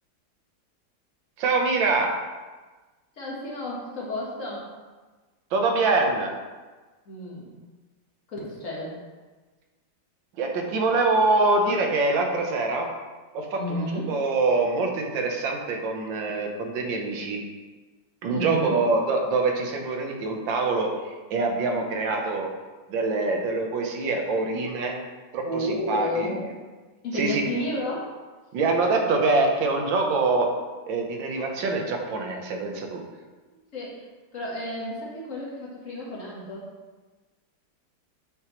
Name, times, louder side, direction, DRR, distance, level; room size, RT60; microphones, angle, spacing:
voice 1, 1.4-2.1 5.5-6.3 10.4-12.9 13.3-17.4 18.2-20.9 21.3-22.5 22.9-25.0 25.3-26.3 27.1-27.5 28.5-30.5 30.9-33.0, right 3 dB, 75° right, 2 dB, 1.5 m, -24 dB
voice 2, 3.2-4.7 7.1-7.5 8.3-9.0 13.6-14.2 18.3-18.8 25.4-26.5 27.0-28.1 33.7-34.0 34.3-36.7, left 1 dB, 45° left, -4 dB, 1.5 m, -31 dB
7.1 x 4.5 x 3.0 m, 1.3 s
omnidirectional pair, 2.1 m